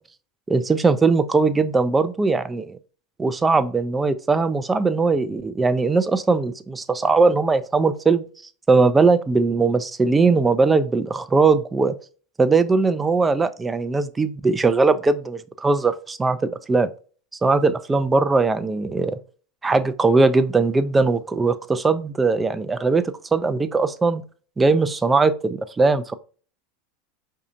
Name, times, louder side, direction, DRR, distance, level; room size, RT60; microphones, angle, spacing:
voice 1, 0.5-2.8 3.2-8.2 8.7-11.9 12.4-16.9 17.4-19.2 19.6-24.2 24.6-26.1, right 3 dB, 15° right, 0.4 m, -20 dB
4.9 x 2.7 x 2.4 m
hypercardioid pair, 85°, 0 cm